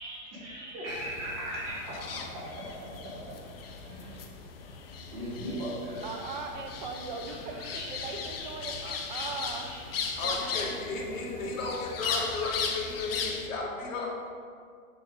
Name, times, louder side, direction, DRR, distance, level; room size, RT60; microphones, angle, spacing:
voice 1, 0.0-3.4 3.8-4.3 4.6-6.0 7.3-8.1 9.1-10.0, right 1 dB, 20° right, -5 dB, 1.1 m, -40 dB
sound 1, 0.9-13.5, left 5 dB, 45° left, 0.5 m, -37 dB
voice 2, 6.0-7.6 7.9-9.7 10.5-10.6, right 4 dB, 35° right, 3 dB, 0.4 m, -39 dB
voice 3, 10.2-14.1, left 3 dB, 65° left, -2 dB, 1.6 m, -34 dB
6.8 x 3.3 x 5.1 m, 2.1 s
supercardioid pair, 175°, 42 cm